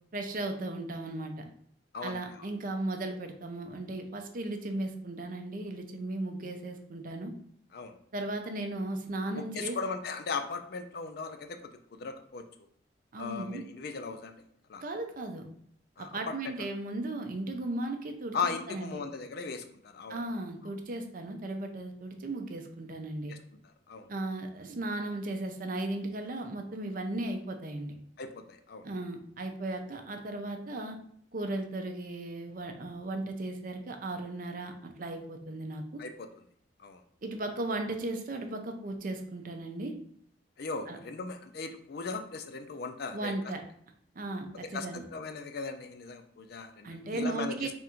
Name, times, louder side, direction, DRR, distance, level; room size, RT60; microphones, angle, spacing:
voice 1, 0.1-1.5 2.0-7.3 8.1-9.8 13.1-13.6 14.8-15.5 16.0-19.0 20.1-23.3 24.1-28.0 28.8-31.0 31.3-36.0 37.2-39.9 40.9-41.0 43.1-43.6 44.1-45.1 46.8-47.7, right 2 dB, 45° right, 5 dB, 0.5 m, -36 dB
voice 2, 1.9-2.5 7.7-7.9 9.3-11.6 11.9-12.4 13.2-14.4 14.7-14.8 16.0-16.7 18.3-20.2 20.6-20.7 23.3-23.4 23.9-24.1 28.2-28.8 36.0-36.3 36.8-37.0 40.6-43.3 44.7-47.7, left 4 dB, 55° left, 6 dB, 0.4 m, -38 dB
3.5 x 2.5 x 4.3 m, 0.66 s
head